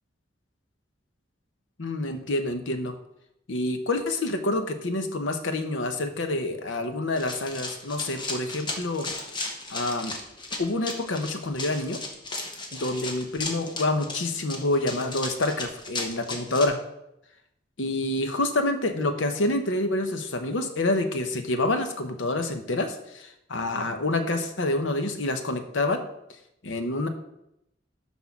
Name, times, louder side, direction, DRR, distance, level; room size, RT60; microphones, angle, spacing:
voice 1, 1.8-2.9 3.5-9.1 9.7-10.1 10.6-12.0 12.7-16.8 17.8-26.0 26.6-27.1, left 2 dB, 85° left, 7 dB, 0.9 m, -27 dB
Run, 7.2-16.7, left 2 dB, 25° left, 1.0 m, -35 dB
6.3 x 5.5 x 5.9 m, 0.82 s
head